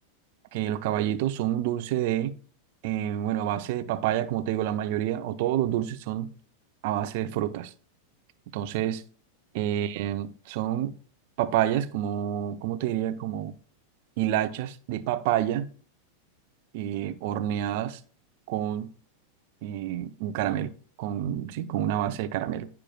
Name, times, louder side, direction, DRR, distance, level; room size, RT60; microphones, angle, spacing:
voice 1, 0.5-2.3 2.8-6.3 6.8-7.7 8.5-9.0 9.6-10.9 11.4-13.5 14.2-15.7 16.7-18.0 18.5-18.9 19.6-20.7 21.0-22.7, right 12 dB, 50° right, 0.7 m, -28 dB
14.5 x 5.9 x 2.4 m
figure-of-eight pair, 90°, 0 cm